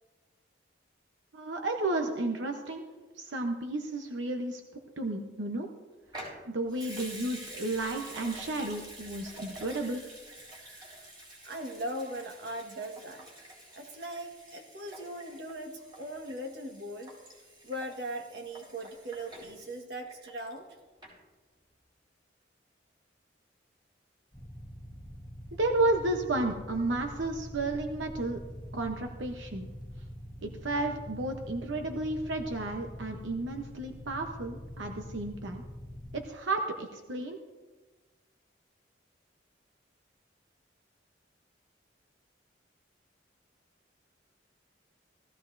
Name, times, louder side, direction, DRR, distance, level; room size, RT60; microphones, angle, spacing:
voice 1, 1.3-2.8 3.2-4.6 5.0-5.7 6.5-10.0 25.6-28.4 28.7-29.7 30.4-35.6 36.1-37.4, right 2 dB, 85° right, 3 dB, 0.9 m, -32 dB
Water tap faucet / Sink (filling or washing) / Liquid, 6.1-20.7 21.0-21.1, right 1 dB, 25° right, 3.9 m, -48 dB
voice 2, 11.4-13.3 13.7-17.1 17.6-20.7, right 1 dB, 60° right, 3 dB, 1.6 m, -39 dB
sound 1, 24.3-36.2, equal, 20° left, 1.2 m, -44 dB
16.5 x 14.5 x 2.7 m, 1.3 s
head